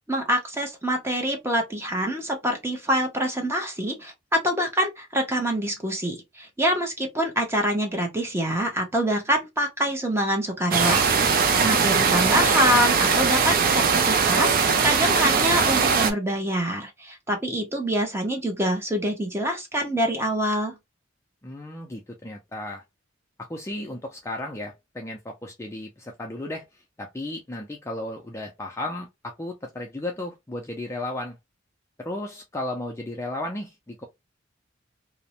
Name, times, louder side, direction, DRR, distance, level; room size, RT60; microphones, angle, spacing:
voice 1, 0.0-11.1 11.6-20.8, equal, 15° right, 0.7 m, -25 dB
sound 1, 10.7-16.1, right 5 dB, 50° right, 0.4 m, -20 dB
voice 2, 11.6-12.0 21.4-22.8 23.4-31.4 32.0-34.0, left 1 dB, 15° left, 0.4 m, -34 dB
2.5 x 2.0 x 2.8 m
head